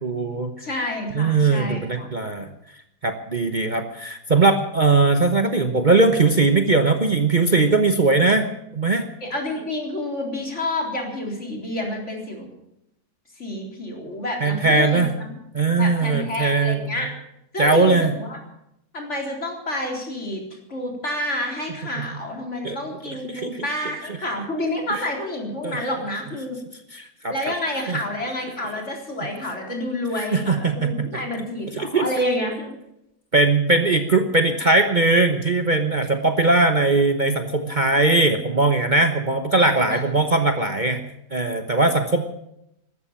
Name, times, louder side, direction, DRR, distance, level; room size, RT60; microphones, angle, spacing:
voice 1, 0.0-0.5 1.1-2.5 3.0-8.5 8.7-9.1 14.4-15.1 15.5-16.9 17.6-18.1 22.0-22.1 22.6-22.8 23.3-23.8 24.9-25.0 25.6-25.8 26.9-27.3 27.9-28.0 30.1-31.1 31.8-32.1 33.3-42.3, right 3 dB, 35° right, 6 dB, 1.1 m, -20 dB
voice 2, 0.6-2.1 9.2-12.5 13.4-15.1 15.8-17.1 17.5-18.4 18.9-20.4 20.7-26.6 27.3-32.8 39.9-40.0, left 1 dB, 50° left, 1 dB, 4.3 m, -29 dB
14.5 x 13.0 x 7.3 m, 0.80 s
omnidirectional pair, 1.6 m